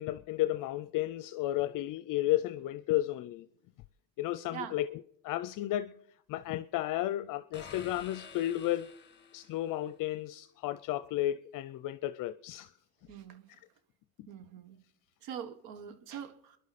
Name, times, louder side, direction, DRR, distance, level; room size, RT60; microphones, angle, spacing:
voice 1, 0.0-3.5 4.2-5.9 6.3-8.9 9.3-12.7, left 14 dB, 60° left, 0.6 m, -33 dB
sound 1, 7.5-9.8, left 5 dB, 30° left, 1.7 m, -50 dB
voice 2, 13.1-13.5 14.3-14.8 15.2-16.6, right 8 dB, 75° right, 1.5 m, -43 dB
29.5 x 11.0 x 4.2 m
supercardioid pair, 90°, 36 cm